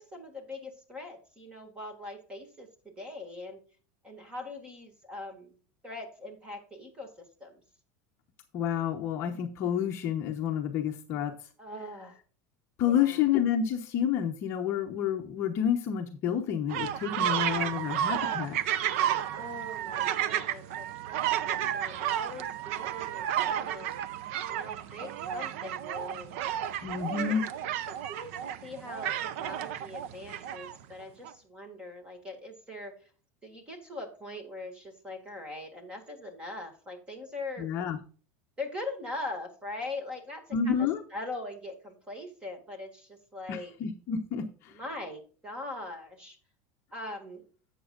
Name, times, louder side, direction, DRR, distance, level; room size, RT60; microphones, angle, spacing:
voice 1, 0.0-3.6 4.0-5.5 5.8-7.6 11.6-12.2 12.9-13.2 17.2-17.4 19.3-23.9 24.5-26.4 27.1-27.4 27.9-33.1 33.4-37.7 38.6-43.7 44.7-46.4 46.9-47.4, left 2 dB, 10° right, 5 dB, 2.0 m, -41 dB
voice 2, 8.5-11.3 12.8-18.6 26.8-27.4 37.6-38.0 40.5-41.0 43.5-44.8, left 8 dB, 30° left, 3 dB, 0.9 m, -29 dB
sound 1, 16.7-30.7 31.2-31.3, right 10 dB, 55° right, 0.6 m, -32 dB
11.5 x 8.1 x 2.5 m, 0.39 s
supercardioid pair, 180°, 8 cm